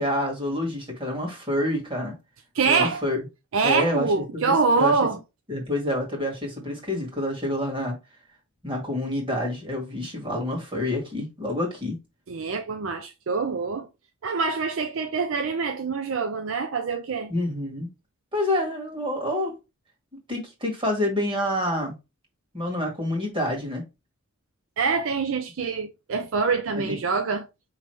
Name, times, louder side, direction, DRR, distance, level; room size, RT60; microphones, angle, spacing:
voice 1, 0.0-2.2 2.6-3.2 3.6-5.0 5.5-8.0 8.6-12.0 17.3-17.9 18.3-19.6 20.3-22.0 22.5-23.8 26.8-27.0, left 1 dB, 25° right, 1.8 m, -27 dB
voice 2, 2.5-3.0 3.5-5.2 12.3-13.9 14.2-17.3 24.8-27.5, right 4 dB, 65° right, 0.4 m, -25 dB
5.2 x 3.1 x 3.2 m
head